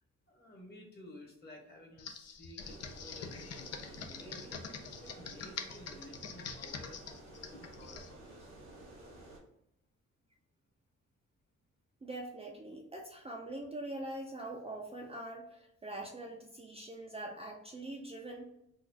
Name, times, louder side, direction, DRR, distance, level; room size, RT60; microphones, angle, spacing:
voice 1, 0.3-4.6 5.0-8.9, left 1 dB, 35° left, 0 dB, 1.1 m, -54 dB
Computer keyboard, 2.0-8.1, left 6 dB, 55° left, 0.5 m, -44 dB
sound 1, 2.6-9.4, right 1 dB, 85° right, 1.4 m, -52 dB
voice 2, 12.0-18.4, right 1 dB, 20° right, -1 dB, 0.4 m, -43 dB
4.0 x 2.3 x 2.7 m, 0.81 s
cardioid pair, 125°, 29 cm